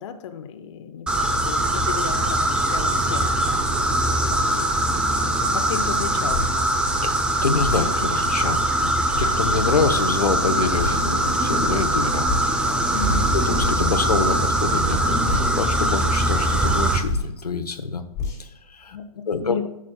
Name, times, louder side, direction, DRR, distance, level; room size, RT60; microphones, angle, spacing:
voice 1, 0.0-3.9 4.3-4.8 5.2-6.4 12.9-13.3 18.9-19.7, left 7 dB, 50° left, 7 dB, 0.8 m, -34 dB
sound 1, 1.1-17.0, right 1 dB, 5° right, 0.6 m, -22 dB
sound 2, 6.3-6.5 7.6-7.9 9.1-9.3 10.8-11.0 12.2-12.5 13.5-14.0 15.2-15.5 17.0-17.3 18.1-18.4, left 3 dB, 15° left, 2.0 m, -28 dB
voice 2, 7.0-12.3 13.3-18.0 18.4-19.0 19.3-19.6, left 4 dB, 90° left, 7 dB, 0.9 m, -26 dB
11.0 x 7.3 x 2.3 m, 0.86 s
hypercardioid pair, 135°, 19 cm